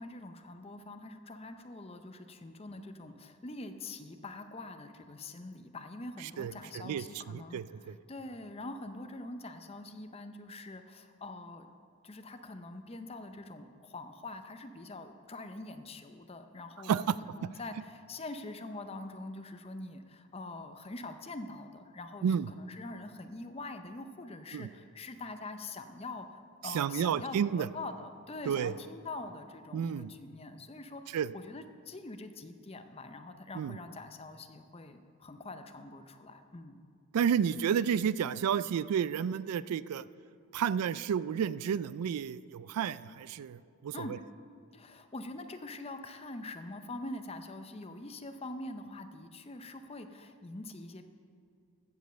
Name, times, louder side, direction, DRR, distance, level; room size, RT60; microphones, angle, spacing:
voice 1, 0.0-11.7 12.0-16.9 17.2-36.8 43.9-44.1 44.7-51.0, left 2 dB, 25° left, 8 dB, 0.5 m, -44 dB
voice 2, 6.4-8.0 16.9-17.2 22.2-22.5 24.5-24.7 26.6-27.7 28.5-28.7 29.7-30.1 31.1-31.3 33.6-33.8 37.1-40.0 40.5-44.1, right 8 dB, 85° right, 17 dB, 0.3 m, -31 dB
15.5 x 5.3 x 6.7 m, 2.4 s
head